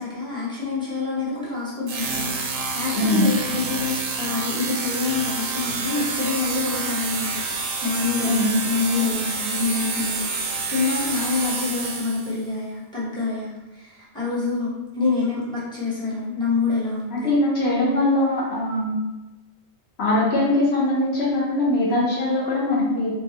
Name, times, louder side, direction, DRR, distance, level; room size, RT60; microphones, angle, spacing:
voice 1, 0.0-17.3, left 4 dB, 5° left, -7 dB, 0.8 m, -27 dB
sound 1, 1.9-12.4, right 4 dB, 75° right, 0.9 m, -28 dB
voice 2, 3.0-3.3 8.2-8.5 17.1-19.0 20.0-23.1, left 1 dB, 60° left, -5 dB, 0.9 m, -21 dB
4.0 x 2.2 x 2.7 m, 1.1 s
omnidirectional pair, 1.3 m